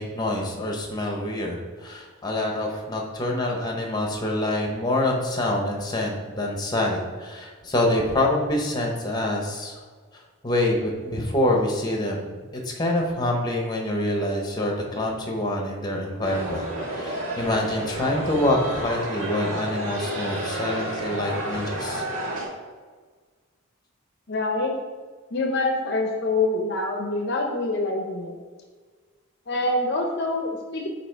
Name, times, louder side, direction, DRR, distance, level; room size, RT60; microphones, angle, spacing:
voice 1, 0.0-9.8 10.1-12.4 12.6-16.6 16.9-22.0, left 1 dB, 20° left, 0 dB, 0.9 m, -26 dB
sound 1, 16.2-22.5, right 1 dB, 70° right, 1.8 m, -31 dB
voice 2, 24.3-24.7 25.3-28.4 29.5-30.9, left 2 dB, 50° left, 2 dB, 0.7 m, -25 dB
8.3 x 2.9 x 4.5 m, 1.5 s
head